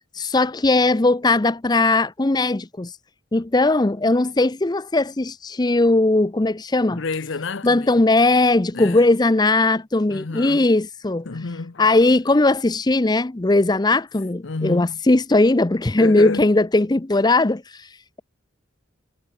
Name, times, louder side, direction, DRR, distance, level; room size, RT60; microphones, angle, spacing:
voice 1, 0.1-2.9 3.3-7.0 7.6-11.3 11.8-17.9, left 2 dB, 20° left, 0.5 m, -19 dB
voice 2, 6.9-7.9 8.7-9.0 10.1-10.7 11.3-11.8 14.4-15.0 16.0-16.5, left 3 dB, 60° left, 0.8 m, -29 dB
head